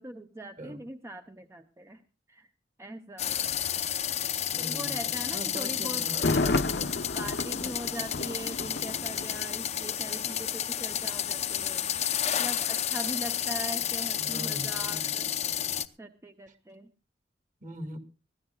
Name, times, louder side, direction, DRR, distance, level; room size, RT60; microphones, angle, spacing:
voice 1, 0.0-2.5 2.8-3.3 4.6-6.1 7.1-12.0 12.4-15.3 16.0-16.9, right 1 dB, 15° right, 7 dB, 0.7 m, -41 dB
sound 1, 3.2-15.9, left 10 dB, 40° left, 0.7 m, -31 dB
voice 2, 4.5-5.0 5.3-7.0 14.2-15.1 17.6-18.0, equal, 45° right, 6 dB, 2.3 m, -40 dB
Thunder, 6.1-10.0 10.3-10.4, left 3 dB, 65° left, 0.9 m, -31 dB
23.5 x 16.5 x 2.3 m, 0.31 s
head